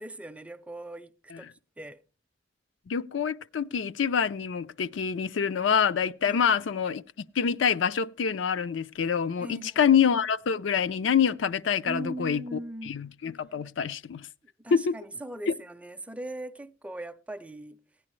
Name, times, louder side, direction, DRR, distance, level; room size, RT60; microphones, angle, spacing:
voice 1, 0.0-1.5 1.8-2.0 6.2-6.5 9.4-9.9 11.9-13.0 14.6-17.8, right 1 dB, 5° right, 0.5 m, -39 dB
voice 2, 2.9-7.0 7.4-14.3 14.7-15.0 15.5-15.6, left 7 dB, 75° left, 0.4 m, -26 dB
16.0 x 9.7 x 3.1 m
head